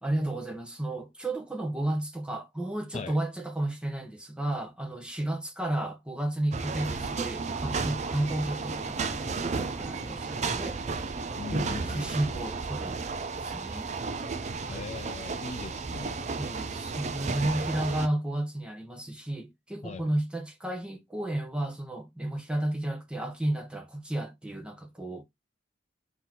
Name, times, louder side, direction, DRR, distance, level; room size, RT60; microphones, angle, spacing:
voice 1, 0.0-10.8 11.5-13.1 13.3-13.9 14.7-15.0 16.4-25.2, right 1 dB, 5° right, 1.0 m, -32 dB
sound 1, 6.5-18.1, right 4 dB, 40° right, 0.5 m, -33 dB
voice 2, 11.4-12.1 14.7-16.3 19.8-20.1, left 4 dB, 40° left, 0.4 m, -40 dB
4.2 x 2.9 x 3.7 m
head